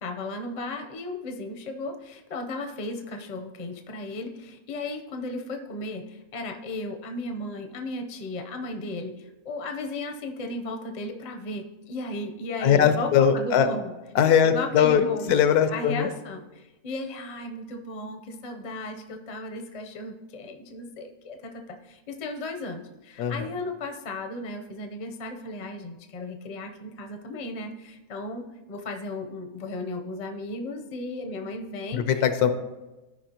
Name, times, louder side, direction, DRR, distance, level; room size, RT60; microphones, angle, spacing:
voice 1, 0.0-13.9 14.4-15.3 15.7-32.1, left 2 dB, 40° left, 5 dB, 0.6 m, -35 dB
voice 2, 12.6-13.7 14.1-16.1 23.2-23.5 31.9-32.5, left 8 dB, 75° left, 9 dB, 1.2 m, -21 dB
13.5 x 5.1 x 2.9 m, 1.1 s
omnidirectional pair, 1.7 m